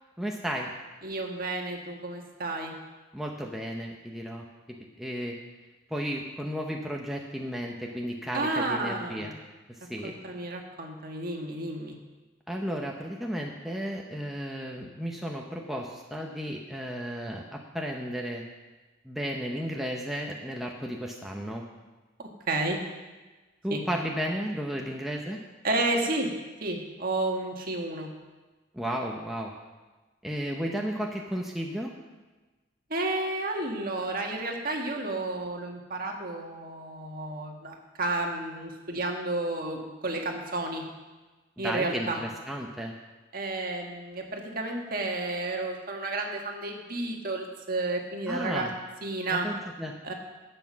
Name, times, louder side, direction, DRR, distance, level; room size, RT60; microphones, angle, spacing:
voice 1, 0.2-0.7 3.1-4.4 5.0-5.4 5.9-9.3 9.9-10.1 12.5-18.4 19.0-21.6 23.6-25.4 28.7-29.5 30.2-31.9 41.6-42.9 48.3-48.7 49.3-49.9, equal, ahead, 0 dB, 0.8 m, -33 dB
voice 2, 1.0-2.7 8.3-9.3 10.0-12.0 22.5-22.8 23.7-23.8 25.6-26.3 26.6-28.1 32.9-40.8 41.6-42.2 43.3-48.7 49.0-49.5 50.0-50.1, right 2 dB, 45° right, 1 dB, 1.6 m, -31 dB
11.0 x 8.1 x 6.2 m, 1.2 s
head